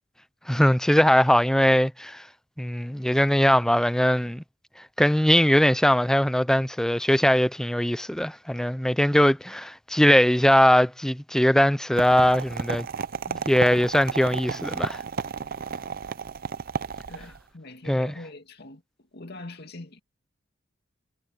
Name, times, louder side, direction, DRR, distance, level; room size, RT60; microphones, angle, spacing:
voice 1, 0.5-2.2 2.6-4.4 5.0-12.9 13.5-15.0 17.9-18.1, equal, 5° left, 0.6 m, -21 dB
sound 1, 12.0-17.4, right 5 dB, 50° right, 0.5 m, -33 dB
voice 2, 15.6-16.0 17.1-18.8 19.1-20.0, left 2 dB, 55° left, 2.4 m, -43 dB
head